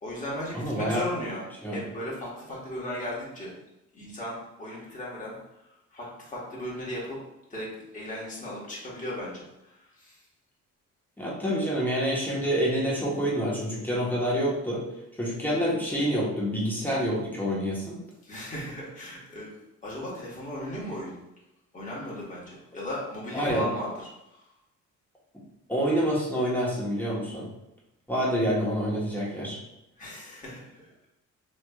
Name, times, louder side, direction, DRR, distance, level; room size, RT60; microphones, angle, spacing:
voice 1, 0.0-3.5 3.9-5.4 5.9-7.2 7.5-10.2 18.2-19.5 19.8-21.2 21.7-24.4 30.0-30.8, equal, 25° left, -6 dB, 1.4 m, -36 dB
voice 2, 0.5-1.1 1.6-1.8 11.2-14.8 15.2-18.0 23.3-23.7 25.7-27.5 28.1-29.6, equal, 5° left, -5 dB, 1.2 m, -27 dB
3.2 x 3.1 x 2.4 m, 0.89 s
cardioid pair, 90°, 30 cm